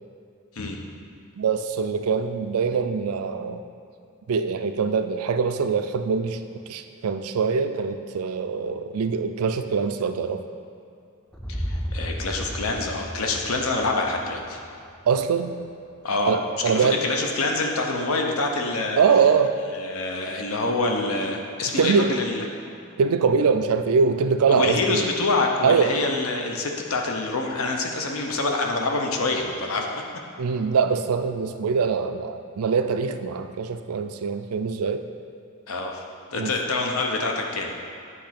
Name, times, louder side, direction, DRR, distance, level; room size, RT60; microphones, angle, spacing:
voice 1, 1.4-3.6 4.3-6.4 6.7-10.4 15.1-15.5 16.3-17.0 19.0-19.6 21.8-22.1 23.0-25.1 25.6-26.0 30.4-35.1 36.3-36.5, right 5 dB, 80° right, 8 dB, 0.4 m, -23 dB
sound 1, 11.3-15.4, equal, 5° left, 0.4 m, -34 dB
voice 2, 11.6-14.6 16.0-16.3 16.7-19.0 19.8-22.4 24.5-29.9 35.7-36.0 36.3-37.7, left 3 dB, 75° left, 1 dB, 0.8 m, -26 dB
8.4 x 3.1 x 5.8 m, 2.7 s
head